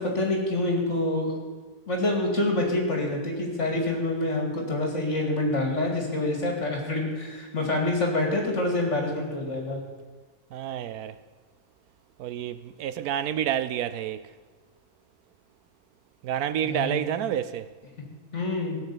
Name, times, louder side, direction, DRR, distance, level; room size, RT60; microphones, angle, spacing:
voice 1, 0.0-1.4 1.9-9.8 16.6-17.0 18.3-18.8, left 2 dB, 50° left, 2.8 m, -26 dB
voice 2, 10.5-11.2 12.2-14.2 16.2-17.7, right 10 dB, 75° right, 1.1 m, -29 dB
16.5 x 6.4 x 8.6 m
omnidirectional pair, 1.7 m